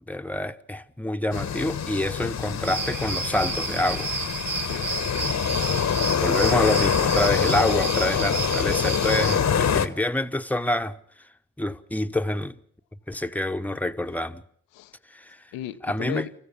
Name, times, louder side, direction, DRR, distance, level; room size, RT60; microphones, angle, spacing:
voice 1, 0.1-4.1 6.2-10.9 11.6-12.5 13.1-14.4 15.1-15.4 15.8-16.3, left 1 dB, 5° left, 1.2 m, -27 dB
sound 1, 1.3-9.9, left 7 dB, 50° left, 1.3 m, -25 dB
sound 2, 2.6-9.4, right 4 dB, 75° right, 3.5 m, -31 dB
voice 2, 4.7-5.7 8.1-8.3 14.7-14.9 15.5-16.3, left 12 dB, 90° left, 1.0 m, -37 dB
28.0 x 14.5 x 7.1 m
hypercardioid pair, 40°, 35 cm